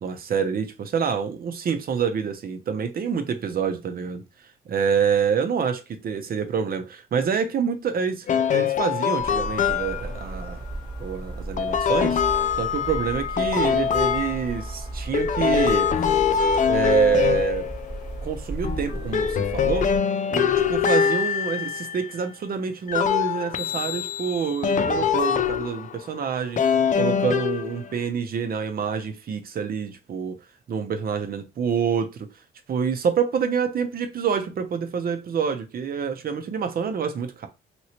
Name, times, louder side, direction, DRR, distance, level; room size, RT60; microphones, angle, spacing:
voice 1, 0.0-4.2 4.7-10.6 11.0-16.1 16.6-17.7 18.2-19.9 20.3-26.6 27.0-30.4 30.7-32.3 32.7-37.5, right 6 dB, 50° right, 0.7 m, -27 dB
sound 1, 8.3-10.2 11.6-14.7 15.1-18.2 18.6-22.2 22.9-26.0 26.6-28.0, left 7 dB, 40° left, 0.4 m, -24 dB
sound 2, 9.2-20.0, right 2 dB, 25° right, 1.1 m, -35 dB
3.0 x 2.9 x 2.8 m
cardioid pair, 90°, 20 cm